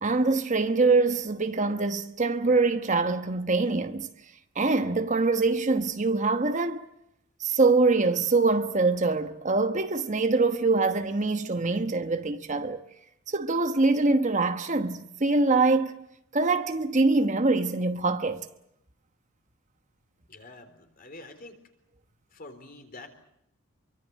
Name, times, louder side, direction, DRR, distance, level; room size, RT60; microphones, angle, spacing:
voice 1, 0.0-4.1 4.5-6.9 7.4-12.8 13.3-16.0 16.3-18.4, right 3 dB, 35° right, 1.1 m, -24 dB
voice 2, 20.3-21.6 22.3-23.1, left 2 dB, 45° left, 3.8 m, -46 dB
26.5 x 24.0 x 7.4 m
head